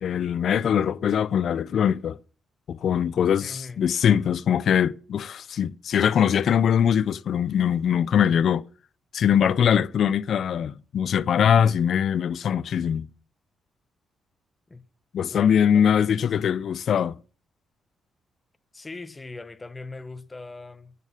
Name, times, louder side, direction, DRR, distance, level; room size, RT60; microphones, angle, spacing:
voice 1, 0.0-2.2 2.7-8.6 9.1-13.1 15.1-17.1, left 8 dB, 60° left, 0.5 m, -22 dB
voice 2, 3.4-3.8 14.7-14.9 15.3-16.7 18.7-20.9, left 3 dB, 20° left, 1.0 m, -41 dB
11.0 x 8.5 x 7.4 m
cardioid pair, 125°, 0 cm